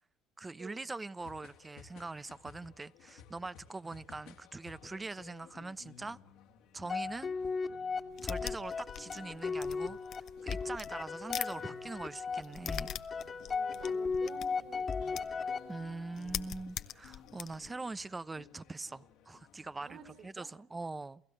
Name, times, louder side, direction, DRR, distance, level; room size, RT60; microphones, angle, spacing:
voice 1, 0.4-6.2 6.7-7.4 8.2-10.0 10.4-12.9 15.7-20.0 20.2-21.2, right 3 dB, 20° right, 0.9 m, -43 dB
sound 1, 1.2-20.3, left 9 dB, 75° left, 2.5 m, -58 dB
sound 2, 6.9-16.2, left 4 dB, 35° left, 2.0 m, -37 dB
sound 3, 8.1-11.6 11.8-15.5 15.8-15.9 16.1-17.7, left 10 dB, 55° left, 1.1 m, -42 dB
voice 2, 13.5-15.3 19.8-20.5, right 7 dB, 55° right, 5.0 m, -52 dB
29.5 x 16.0 x 7.8 m
supercardioid pair, 85°, 0 cm